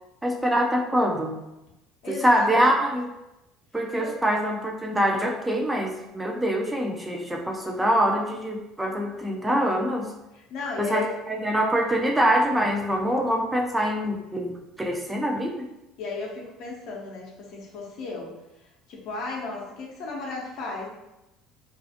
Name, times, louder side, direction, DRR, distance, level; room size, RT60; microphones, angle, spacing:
voice 1, 0.2-1.4 2.1-3.1 3.7-10.1 10.8-15.7, equal, 10° right, 1 dB, 0.4 m, -24 dB
voice 2, 2.0-2.4 4.0-4.2 10.3-11.1 16.0-18.3 18.9-20.9, left 3 dB, 65° left, -2 dB, 0.7 m, -34 dB
2.4 x 2.3 x 2.6 m, 0.94 s
hypercardioid pair, 70°, 0 cm